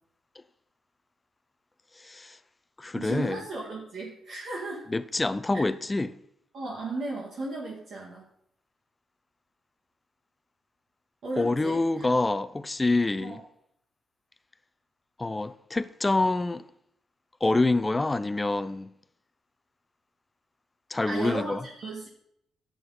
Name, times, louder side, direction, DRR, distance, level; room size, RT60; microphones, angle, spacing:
voice 1, 2.0-2.4 2.8-3.4 4.9-6.1 11.4-13.4 15.2-16.6 17.4-18.9 20.9-21.6, left 2 dB, 15° left, 0.4 m, -26 dB
voice 2, 2.9-4.8 5.5-5.7 6.5-8.3 11.2-12.1 13.2-13.4 21.1-22.1, right 2 dB, 55° right, 2.2 m, -35 dB
11.0 x 8.2 x 4.2 m
cardioid pair, 160°, 0 cm